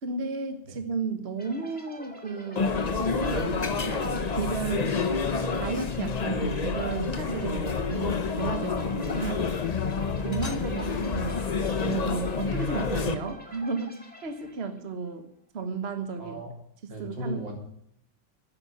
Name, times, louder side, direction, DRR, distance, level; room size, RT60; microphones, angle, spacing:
voice 1, 0.0-2.7 2.9-5.1 5.4-9.5 10.2-11.5 11.8-15.3 15.5-16.4 17.0-17.4, right 4 dB, 35° right, 7 dB, 1.3 m, -33 dB
sound 1, 1.4-14.9, equal, 5° left, 1.9 m, -49 dB
sound 2, 2.6-13.1, left 5 dB, 70° left, 0.3 m, -28 dB
voice 2, 16.2-16.5 16.9-17.5, equal, 70° right, 0 dB, 4.2 m, -36 dB
11.5 x 10.5 x 7.0 m, 0.70 s
omnidirectional pair, 2.1 m